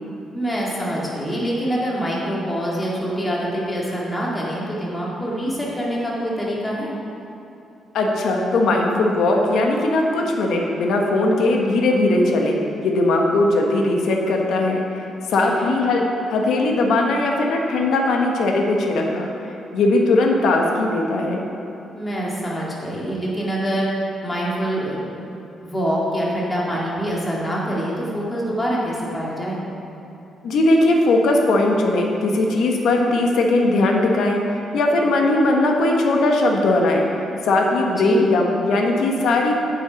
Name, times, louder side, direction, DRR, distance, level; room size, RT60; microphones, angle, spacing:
voice 1, 0.3-6.9 15.4-15.8 21.9-25.0 25.6-29.6 37.9-38.3, equal, 15° left, -5 dB, 2.0 m, -25 dB
voice 2, 7.9-19.3 19.7-21.4 30.4-37.1 37.4-39.5, left 2 dB, 70° left, 1 dB, 1.2 m, -19 dB
8.9 x 7.5 x 5.2 m, 2.8 s
cardioid pair, 140°, 0 cm